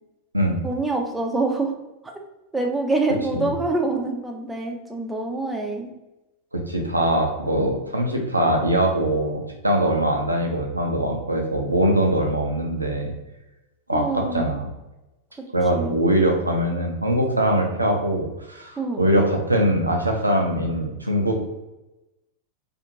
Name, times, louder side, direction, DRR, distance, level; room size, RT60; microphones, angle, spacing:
voice 1, 0.6-1.7 2.5-5.9 13.9-14.5 15.7-16.0 18.8-19.0, right 3 dB, 10° right, 2 dB, 0.5 m, -25 dB
voice 2, 6.5-13.1 13.9-14.7 15.5-21.4, right 1 dB, 85° right, 2 dB, 0.5 m, -22 dB
2.5 x 2.4 x 2.9 m, 0.99 s
figure-of-eight pair, 90°, 0 cm